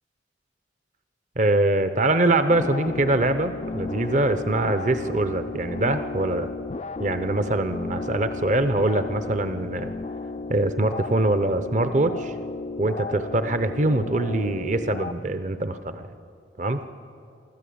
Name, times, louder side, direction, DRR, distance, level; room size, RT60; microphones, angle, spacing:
voice 1, 1.4-6.5 7.0-9.9 10.5-12.3 12.8-16.1 16.6-16.8, right 2 dB, 40° right, 10 dB, 0.7 m, -23 dB
sound 1, 2.5-15.1, left 3 dB, 35° left, 0.4 m, -34 dB
24.0 x 14.0 x 8.6 m, 2.4 s
head